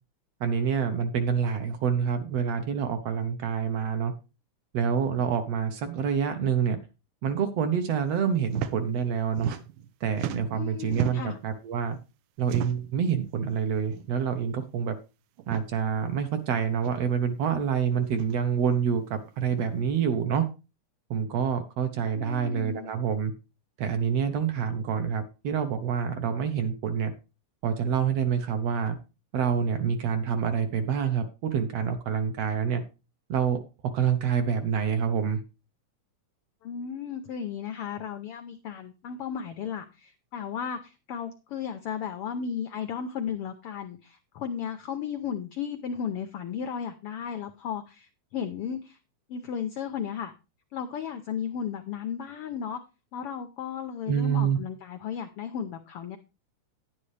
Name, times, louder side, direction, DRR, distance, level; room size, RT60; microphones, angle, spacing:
voice 1, 0.4-4.1 4.7-6.8 7.2-9.6 10.0-12.0 12.4-14.9 15.5-20.4 21.1-23.3 23.8-27.1 27.6-29.0 29.3-32.8 33.3-33.6 33.9-35.4 54.1-54.6, right 7 dB, 65° right, 8 dB, 1.7 m, -27 dB
sound 1, 8.5-8.7 9.0-9.9 10.1-11.4 12.4-13.0 13.9-14.1 14.4-14.5 15.4-15.7 16.8-16.9 18.1-18.4 19.4-19.7, right 11 dB, 85° right, 2.3 m, -35 dB
voice 2, 10.5-11.4 22.1-22.9 36.6-49.0 49.3-50.3 50.7-52.8 53.1-56.2, left 7 dB, 90° left, 8 dB, 1.2 m, -35 dB
10.5 x 9.9 x 3.3 m, 0.30 s
omnidirectional pair, 3.6 m